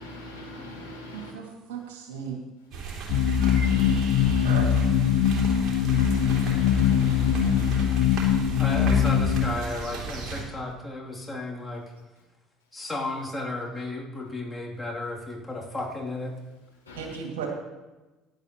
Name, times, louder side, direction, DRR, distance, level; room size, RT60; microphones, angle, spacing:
voice 1, 0.0-1.3 3.4-4.6 5.9-7.9 16.9-17.1, left 1 dB, 85° left, -3 dB, 2.4 m, -42 dB
voice 2, 1.1-2.4 4.4-4.7 17.0-17.5, right 7 dB, 70° right, 0 dB, 2.2 m, -35 dB
sound 1, 2.7-10.4, right 5 dB, 50° right, 2.9 m, -36 dB
sound 2, 3.1-9.5, left 8 dB, 60° left, 0.7 m, -22 dB
voice 3, 8.6-11.8 12.7-16.3, left 2 dB, 15° left, -3 dB, 3.0 m, -33 dB
15.5 x 11.0 x 3.0 m, 1.1 s
figure-of-eight pair, 60°, 0 cm